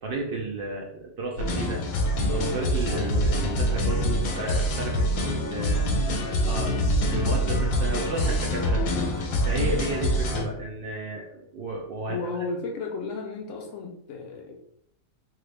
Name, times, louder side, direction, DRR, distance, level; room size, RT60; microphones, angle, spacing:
voice 1, 0.0-1.8 2.3-5.8 6.1-6.8 7.1-8.8 9.2-12.2, right 3 dB, 70° right, -1 dB, 0.5 m, -33 dB
sound 1, 1.4-10.5, equal, 85° left, 1.1 m, -25 dB
voice 2, 5.6-6.1 6.4-6.6 12.1-14.7, left 3 dB, 70° left, 2 dB, 0.8 m, -34 dB
3.1 x 2.4 x 3.2 m, 0.71 s
omnidirectional pair, 1.5 m